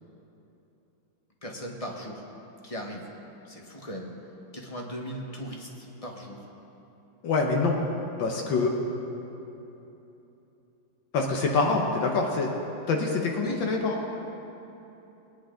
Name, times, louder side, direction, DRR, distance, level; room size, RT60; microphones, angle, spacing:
voice 1, 1.4-2.2 2.6-3.1 3.4-4.1 4.5-6.5 13.4-13.6, equal, 25° left, 0 dB, 0.9 m, -38 dB
voice 2, 7.2-7.8 8.2-8.8 11.1-12.5 12.9-14.0, left 3 dB, 70° left, 0 dB, 1.7 m, -25 dB
20.0 x 9.8 x 3.8 m, 3.0 s
omnidirectional pair, 2.2 m